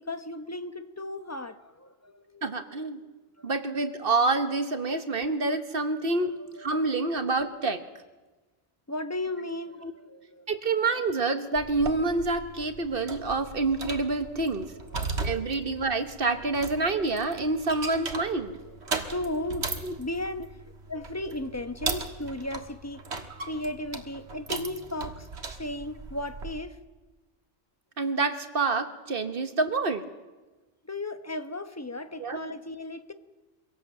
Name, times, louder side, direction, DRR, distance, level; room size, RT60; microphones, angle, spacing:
voice 1, 0.0-3.1 6.2-7.4 8.9-10.5 14.9-15.6 18.6-19.7 20.0-23.0 23.5-25.3 25.6-26.8 29.4-29.6 30.8-33.1, left 1 dB, 15° left, 0.9 m, -36 dB
voice 2, 2.4-3.0 3.4-6.3 6.6-7.8 9.8-9.9 10.5-14.7 15.2-18.6 19.8-19.9 28.0-30.0 32.2-32.4, right 3 dB, 60° right, 1.4 m, -27 dB
sound 1, 11.6-26.6, right 4 dB, 80° right, 1.9 m, -37 dB
24.0 x 17.5 x 7.7 m
omnidirectional pair, 1.1 m